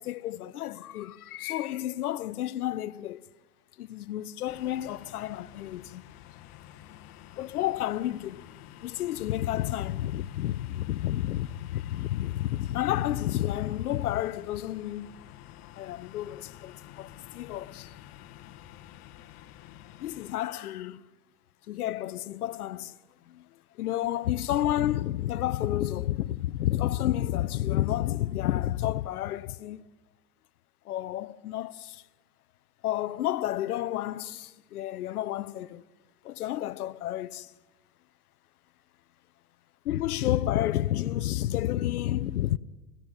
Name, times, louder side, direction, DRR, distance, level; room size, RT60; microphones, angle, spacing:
voice 1, 0.0-3.2 3.8-6.0 7.3-8.4 8.8-15.1 15.8-17.9 20.0-21.0 21.7-23.0 23.3-29.9 30.8-32.0 32.8-35.8 36.2-37.5 39.8-42.6, left 13 dB, 85° left, 1.0 m, -30 dB
sound 1, 4.5-20.4, left 12 dB, 55° left, 1.8 m, -50 dB
29.0 x 16.5 x 9.1 m
hypercardioid pair, 105°, 44 cm